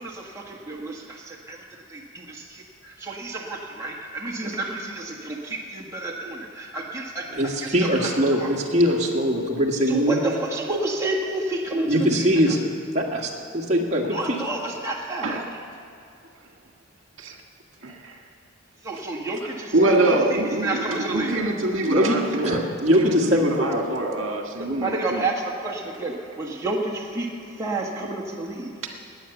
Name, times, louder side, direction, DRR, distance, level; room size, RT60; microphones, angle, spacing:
voice 1, 0.0-8.5 9.9-12.6 14.1-15.6 18.8-21.4 24.6-28.7, right 2 dB, 15° right, -3 dB, 1.6 m, -30 dB
voice 2, 7.3-10.2 11.9-12.7 12.9-14.4 21.8-23.9, equal, 35° right, -2 dB, 1.9 m, -22 dB
voice 3, 17.8-18.1 19.7-25.2, right 2 dB, 75° right, 1 dB, 1.7 m, -24 dB
20.5 x 8.6 x 7.0 m, 2.5 s
head